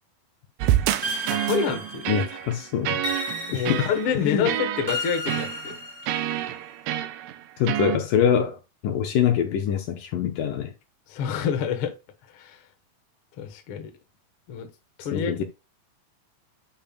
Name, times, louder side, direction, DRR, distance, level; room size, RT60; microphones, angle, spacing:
sound 1, 0.6-8.0, right 12 dB, 85° right, 2.5 m, -28 dB
sound 2, 1.0-2.4 3.0-4.2 4.9-6.4, left 1 dB, 15° left, 0.7 m, -33 dB
voice 1, 1.3-2.1 3.5-5.7 11.1-11.9 12.3-12.6 13.4-13.9 14.5-14.7 15.0-15.3, left 7 dB, 60° left, 1.5 m, -27 dB
voice 2, 2.1-3.0 3.5-4.5 7.6-10.7 15.1-15.4, left 8 dB, 75° left, 2.2 m, -24 dB
8.9 x 5.3 x 2.4 m
omnidirectional pair, 4.3 m